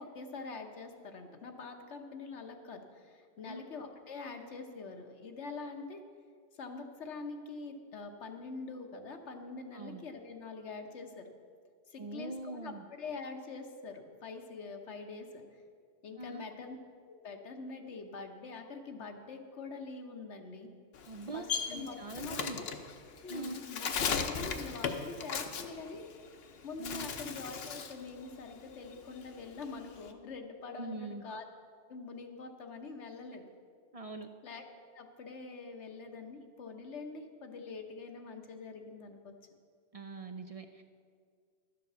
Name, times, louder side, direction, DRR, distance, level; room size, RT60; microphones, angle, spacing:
voice 1, 0.0-6.0 6.6-11.3 11.9-15.4 16.0-16.8 17.1-20.7 21.3-22.7 23.2-26.1 26.4-31.4 31.9-33.5 34.4-34.6 34.9-39.3, left 4 dB, 80° left, 5 dB, 1.3 m, -45 dB
voice 2, 9.7-10.0 12.0-12.8 16.2-16.5 21.1-22.7 23.3-23.6 26.8-27.1 30.8-31.2 33.9-34.3 39.9-40.8, right 3 dB, 45° right, 7 dB, 0.5 m, -43 dB
Bird, 20.9-26.4 26.7-28.0 28.4-30.1, left 6 dB, 60° left, 1.0 m, -37 dB
12.0 x 7.5 x 6.8 m, 2.1 s
omnidirectional pair, 1.2 m